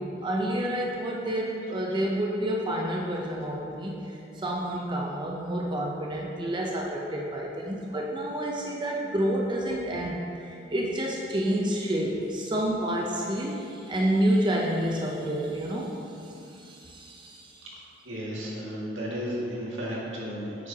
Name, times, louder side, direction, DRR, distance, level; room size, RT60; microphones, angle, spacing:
voice 1, 0.0-17.7, right 1 dB, 25° right, -2 dB, 0.6 m, -29 dB
voice 2, 18.0-20.7, equal, 85° right, -5 dB, 1.9 m, -33 dB
8.8 x 8.5 x 2.8 m, 2.7 s
head